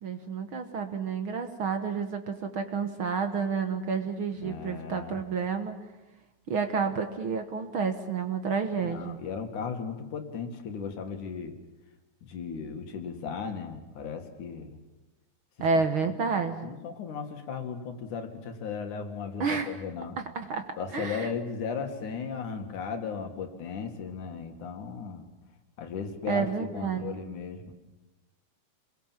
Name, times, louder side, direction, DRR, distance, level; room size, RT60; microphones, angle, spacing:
voice 1, 0.0-5.8 6.5-9.2 15.6-16.7 19.4-19.7 20.4-20.6 20.9-21.3 26.3-27.2, right 5 dB, 55° right, 7 dB, 1.8 m, -30 dB
voice 2, 4.4-5.2 8.8-11.6 12.2-14.8 15.6-15.7 16.0-16.3 16.6-20.2 20.8-25.3 25.8-26.5 26.7-27.7, left 6 dB, 85° left, 5 dB, 3.4 m, -36 dB
28.5 x 21.5 x 7.4 m, 1.0 s
omnidirectional pair, 3.4 m